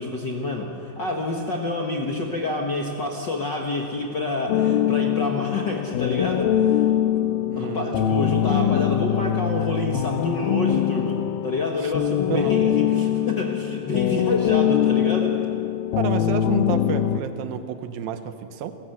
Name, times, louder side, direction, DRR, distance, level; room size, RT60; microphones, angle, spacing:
voice 1, 0.0-6.9 7.6-15.4, left 2 dB, 50° left, 0 dB, 1.3 m, -28 dB
sound 1, 4.5-17.2, left 10 dB, 90° left, 2.5 m, -23 dB
voice 2, 7.5-8.1 8.6-8.7 11.8-11.9 12.3-12.5 16.0-18.7, right 9 dB, 80° right, 9 dB, 2.8 m, -30 dB
29.0 x 14.5 x 8.0 m, 2.5 s
omnidirectional pair, 4.1 m